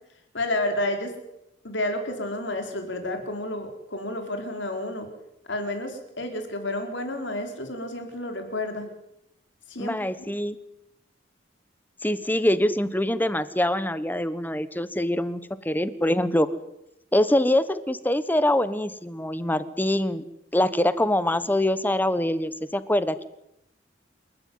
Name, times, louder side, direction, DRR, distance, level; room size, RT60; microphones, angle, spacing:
voice 1, 0.3-1.1 1.6-5.1 5.5-8.9 9.7-10.0, left 1 dB, 75° left, 5 dB, 4.8 m, -30 dB
voice 2, 9.8-10.6 12.0-15.4 15.6-16.5 17.1-20.2 20.5-23.2, left 1 dB, 10° left, 14 dB, 1.2 m, -24 dB
28.5 x 13.5 x 9.7 m, 0.84 s
head